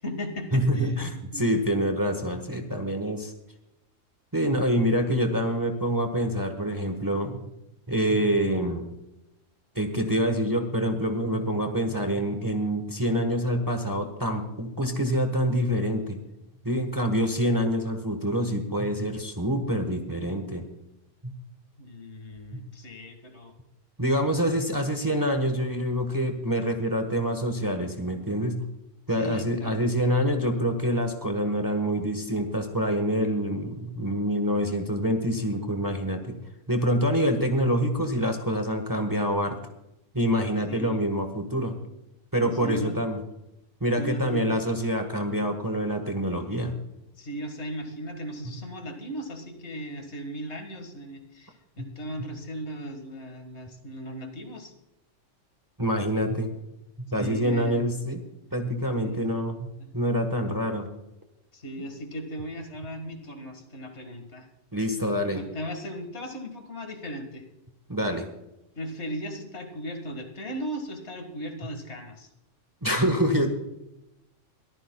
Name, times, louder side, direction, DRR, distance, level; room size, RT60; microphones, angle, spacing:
voice 1, 0.0-1.0 1.3-1.5 21.8-23.5 29.1-29.8 40.7-41.0 42.4-43.0 43.9-44.5 47.2-54.7 57.2-57.8 59.0-59.2 61.5-64.5 65.3-67.4 68.8-72.3, equal, 60° left, 5 dB, 2.0 m, -37 dB
voice 2, 0.5-3.3 4.3-7.4 7.9-8.9 9.7-16.2 16.6-20.6 21.2-21.3 24.0-28.6 29.1-36.4 36.7-39.6 40.1-41.7 42.3-43.2 43.8-46.8 51.8-51.9 55.8-56.5 57.1-58.2 58.5-59.7 59.9-60.9 64.7-65.4 67.9-68.3 72.8-73.5, equal, 15° right, 5 dB, 1.2 m, -26 dB
22.0 x 14.5 x 2.3 m, 0.89 s
omnidirectional pair, 1.3 m